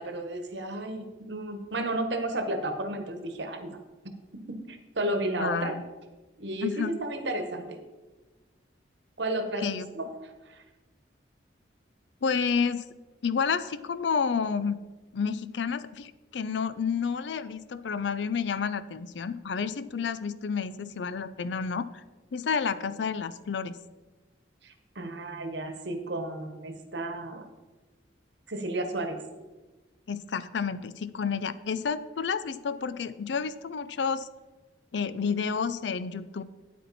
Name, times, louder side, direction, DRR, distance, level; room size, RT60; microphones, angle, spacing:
voice 1, 0.0-3.8 4.7-5.7 6.4-7.8 9.2-10.1 10.4-10.6 24.6-27.5 28.5-29.2, right 1 dB, 70° right, 7 dB, 1.2 m, -32 dB
voice 2, 5.4-5.8 6.6-7.0 9.6-9.9 12.2-12.8 13.2-14.8 15.1-21.9 22.3-23.8 30.1-34.3 34.9-36.4, left 6 dB, 75° left, 15 dB, 0.5 m, -30 dB
9.3 x 8.3 x 4.2 m, 1.2 s
head